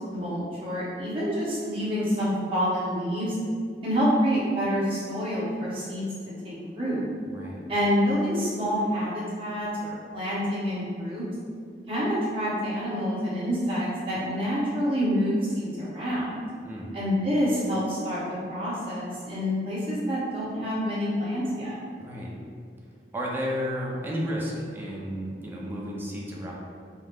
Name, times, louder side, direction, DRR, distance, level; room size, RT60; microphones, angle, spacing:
voice 1, 0.1-3.4 3.8-6.0 6.4-7.1 7.7-11.3 11.9-16.3 16.9-18.2 18.5-21.7, equal, 30° right, -10 dB, 1.4 m, -27 dB
voice 2, 7.2-7.6 16.6-16.9 22.0-22.4 23.1-26.5, equal, 10° right, -4 dB, 0.6 m, -32 dB
5.3 x 2.1 x 3.7 m, 2.3 s
head